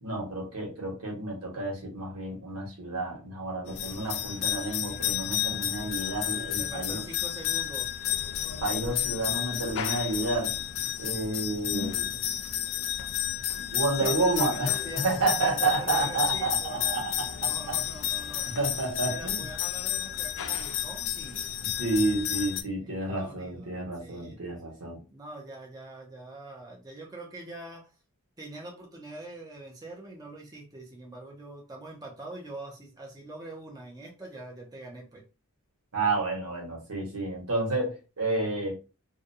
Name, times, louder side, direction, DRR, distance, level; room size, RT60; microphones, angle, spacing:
voice 1, 0.0-7.0 8.6-10.5 11.0-12.1 13.7-14.8 15.0-17.3 18.6-19.5 21.8-25.0 35.9-38.7, right 2 dB, 85° right, -1 dB, 1.2 m, -30 dB
sound 1, 3.7-22.6, left 10 dB, 60° left, 0.3 m, -31 dB
voice 2, 6.6-7.9 14.0-15.0 15.4-17.0 17.4-18.5 19.1-21.4 22.8-24.6 25.1-27.9 28.4-35.2, right 2 dB, 15° right, -2 dB, 0.6 m, -44 dB
2.5 x 2.2 x 2.6 m, 0.31 s
head